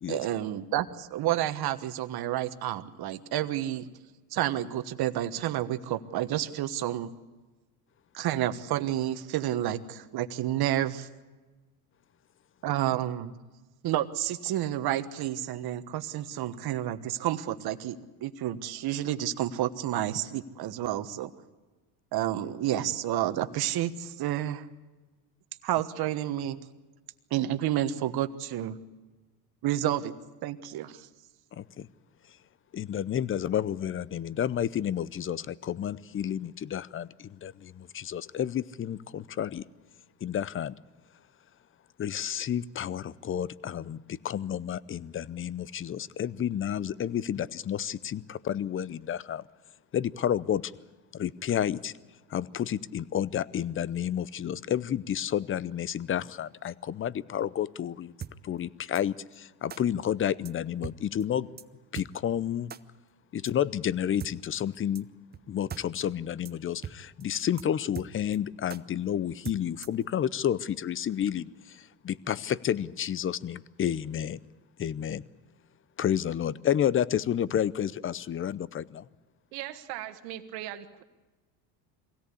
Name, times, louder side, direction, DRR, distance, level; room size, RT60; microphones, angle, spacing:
voice 1, 0.1-3.9 4.3-7.1 8.1-11.1 12.6-13.3 13.8-21.3 22.1-24.7 25.6-26.6 27.3-28.8 29.6-30.1 30.4-31.1, right 12 dB, 50° right, 11 dB, 1.4 m, -30 dB
voice 2, 31.5-31.9 32.7-39.6 40.2-40.7 42.0-49.4 49.9-50.7 51.1-51.9 52.3-58.1 58.4-61.5 61.9-62.7 63.3-65.1 65.5-71.8 72.0-74.4 74.8-75.2 76.0-79.0, left 10 dB, 25° left, 20 dB, 0.6 m, -30 dB
sound 1, 58.2-58.3 58.9-59.0 59.7-59.8 60.4-60.5 60.8-61.0 61.2-61.3 61.6-61.7 61.9-62.1 62.7-62.8 63.4-63.5 64.2-64.3 64.9-65.0 65.3-65.4 65.7-65.8 66.1-66.2 66.4-66.5 66.8-67.0 67.2-67.3 67.6-67.7 67.9-68.4 68.7-68.8 69.4-70.0, right 7 dB, 20° right, 0.7 m, -39 dB
voice 3, 79.5-81.0, right 13 dB, 80° right, 9 dB, 1.7 m, -39 dB
23.0 x 17.0 x 8.4 m, 1.2 s
supercardioid pair, 90°, 48 cm